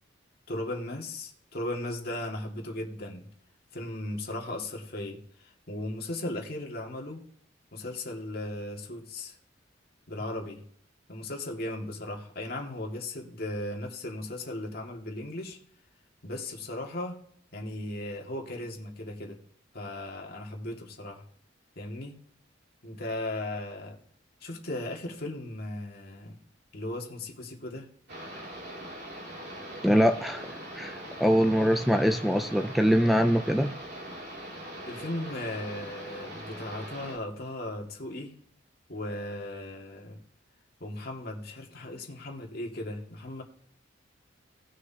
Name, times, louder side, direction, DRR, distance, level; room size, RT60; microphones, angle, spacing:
voice 1, 0.5-3.3 3.7-7.3 7.7-9.4 10.1-10.6 11.1-15.6 16.2-17.2 17.5-19.4 19.7-21.2 21.8-22.2 22.8-24.0 24.4-26.4 26.7-27.9 34.8-38.4 38.9-40.2 40.8-43.4, left 1 dB, 55° left, 1 dB, 2.0 m, -37 dB
sound 1, 28.1-37.2, equal, 60° right, 2.8 m, -41 dB
voice 2, 29.8-30.5 30.8-33.7, equal, ahead, 7 dB, 0.4 m, -23 dB
18.5 x 6.3 x 2.8 m, 0.65 s
head